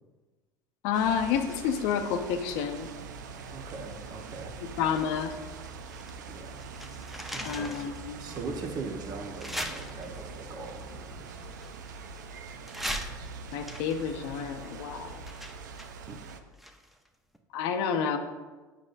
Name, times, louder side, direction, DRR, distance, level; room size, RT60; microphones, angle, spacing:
voice 1, 0.8-2.9 4.8-5.3 7.4-8.2 13.5-15.2 17.5-18.2, left 7 dB, 65° left, 7 dB, 0.6 m, -29 dB
sound 1, 0.9-16.4, right 4 dB, 85° right, 0.4 m, -43 dB
voice 2, 3.5-4.5 6.3-6.6 7.3-7.9 8.2-11.4 16.1-16.2, right 4 dB, 45° right, 3 dB, 1.1 m, -40 dB
sound 2, 4.9-6.2 6.4-8.0 8.5-8.6 9.4-10.4 11.3-12.2 12.6-17.1 17.3-17.4, equal, ahead, 0.6 m, -40 dB
7.5 x 5.0 x 2.6 m, 1.3 s
hypercardioid pair, 75°, 9 cm